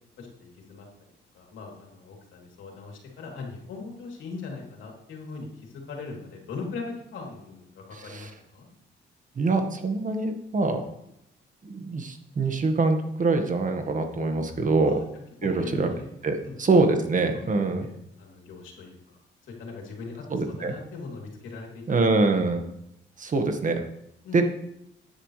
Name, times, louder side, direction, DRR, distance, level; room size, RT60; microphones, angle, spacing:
voice 1, 0.2-0.9 1.3-8.7 14.8-15.1 15.4-16.1 16.4-16.5 17.3-19.2 19.6-22.0 24.2-24.4, left 4 dB, 75° left, 0 dB, 3.3 m, -40 dB
voice 2, 7.9-8.3 9.3-10.8 11.6-15.0 15.4-15.9 16.2-17.9 20.3-20.7 21.9-22.6 23.2-23.8 24.3-24.4, right 3 dB, 40° right, 5 dB, 1.7 m, -24 dB
13.0 x 10.0 x 3.4 m, 0.81 s
cardioid pair, 90°, 20 cm